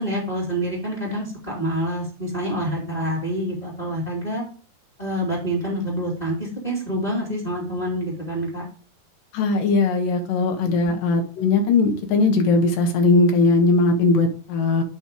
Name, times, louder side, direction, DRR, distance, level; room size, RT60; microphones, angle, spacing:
voice 1, 0.0-4.4 5.0-8.6 10.8-10.9, equal, 15° left, -3 dB, 2.1 m, -27 dB
voice 2, 9.3-14.8, left 3 dB, 70° left, 5 dB, 2.8 m, -19 dB
7.9 x 4.3 x 4.9 m, 0.40 s
omnidirectional pair, 4.3 m